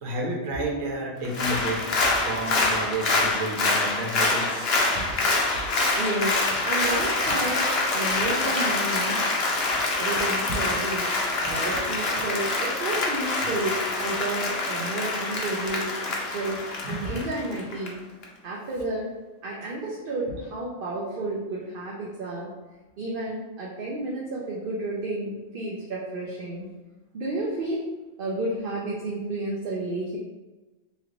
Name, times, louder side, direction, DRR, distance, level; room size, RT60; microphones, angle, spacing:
voice 1, 0.0-1.9 2.2-5.3 5.5-5.6 16.8-17.2, right 1 dB, 80° right, -1 dB, 1.3 m, -31 dB
Applause, 1.2-17.9 18.2-18.3, left 2 dB, 55° left, 0.9 m, -26 dB
voice 2, 5.9-9.2 10.0-11.1 11.5-16.0 16.3-16.6 16.9-18.0 18.4-19.1 19.4-22.5 23.0-26.7 27.1-27.8 28.2-30.2, right 2 dB, 50° right, -4 dB, 0.7 m, -31 dB
3.2 x 3.1 x 3.7 m, 1.2 s
omnidirectional pair, 1.4 m